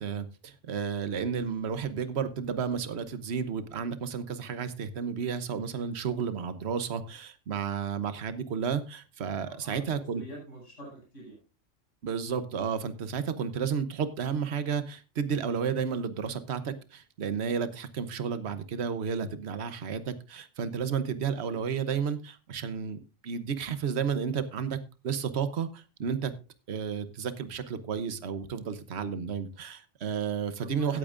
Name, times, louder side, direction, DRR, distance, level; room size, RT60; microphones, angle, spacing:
voice 1, 0.0-10.2 12.0-26.3 26.7-31.0, right 6 dB, 60° right, 1.2 m, -32 dB
voice 2, 9.5-9.8 10.1-11.4 30.6-31.0, equal, 85° left, 6.0 m, -46 dB
17.0 x 8.8 x 2.5 m
omnidirectional pair, 1.3 m